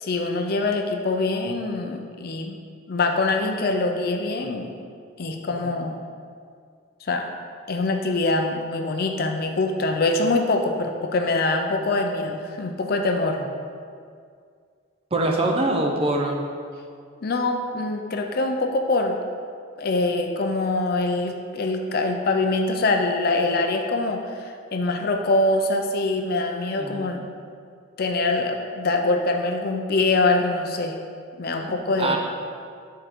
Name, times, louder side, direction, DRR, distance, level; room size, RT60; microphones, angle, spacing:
voice 1, 0.0-2.6 2.9-4.7 5.2-6.0 7.0-7.3 7.7-13.4 17.2-19.2 19.8-27.3 28.0-30.9 31.4-32.2, left 2 dB, 45° left, 4 dB, 0.4 m, -24 dB
voice 2, 15.1-16.4 26.8-27.1 32.0-32.2, right 2 dB, 25° right, 0 dB, 0.6 m, -23 dB
6.8 x 3.7 x 4.4 m, 2.2 s
head